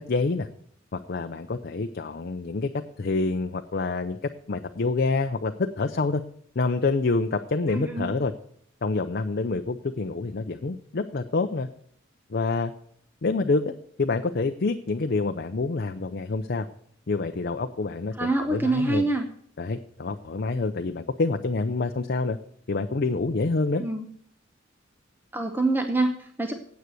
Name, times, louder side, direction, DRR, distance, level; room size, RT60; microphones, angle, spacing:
voice 1, 0.1-0.5 0.9-4.2 4.5-6.2 6.6-8.3 8.8-11.7 12.3-12.7 13.2-13.7 14.0-16.7 17.1-19.0 19.6-22.4 22.7-23.8, left 3 dB, 55° left, 6 dB, 0.6 m, -27 dB
voice 2, 7.7-8.1 18.1-19.3 23.8-24.1 25.3-26.5, right 2 dB, 10° right, 4 dB, 0.8 m, -25 dB
9.5 x 8.1 x 7.7 m, 0.65 s
head